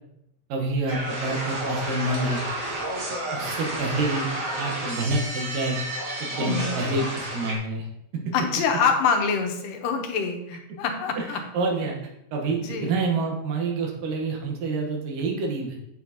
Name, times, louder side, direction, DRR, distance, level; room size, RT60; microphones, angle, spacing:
voice 1, 0.5-2.4 3.3-4.3 4.6-5.8 6.2-7.9 11.2-11.3 11.5-12.0 12.3-15.8, right 2 dB, 80° right, 1 dB, 2.9 m, -27 dB
sound 1, 0.9-7.5, right 1 dB, 45° right, 1.0 m, -31 dB
voice 2, 6.4-6.7 8.3-11.4 12.6-12.9, left 5 dB, 90° left, 4 dB, 2.5 m, -25 dB
7.9 x 7.0 x 2.8 m, 0.80 s
omnidirectional pair, 3.8 m